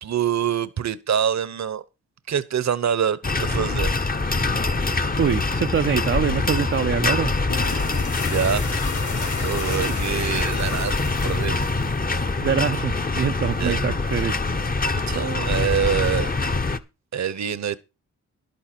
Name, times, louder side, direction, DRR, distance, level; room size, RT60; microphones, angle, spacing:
voice 1, 0.0-1.8 2.3-4.0 8.3-8.8 9.4-11.6 13.6-13.8 15.1-16.3 17.1-17.8, right 8 dB, 60° right, 0.9 m, -25 dB
sound 1, 3.2-16.8, left 3 dB, 25° left, 0.9 m, -24 dB
voice 2, 5.2-7.3 12.4-14.5, right 8 dB, 40° right, 0.5 m, -24 dB
sound 2, 7.4-12.4, left 4 dB, 65° left, 3.0 m, -33 dB
11.0 x 9.3 x 4.5 m
cardioid pair, 60°, 32 cm